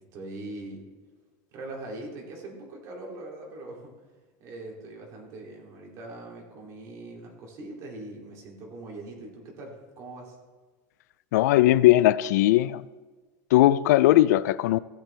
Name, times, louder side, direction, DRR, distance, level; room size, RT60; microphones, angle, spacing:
voice 1, 0.1-0.8 1.5-3.9 4.4-10.4, right 2 dB, 35° right, -1 dB, 2.7 m, -41 dB
voice 2, 11.3-12.8 13.5-14.8, left 15 dB, 80° left, 18 dB, 0.4 m, -19 dB
15.5 x 8.5 x 3.3 m, 1.3 s
supercardioid pair, 165°, 9 cm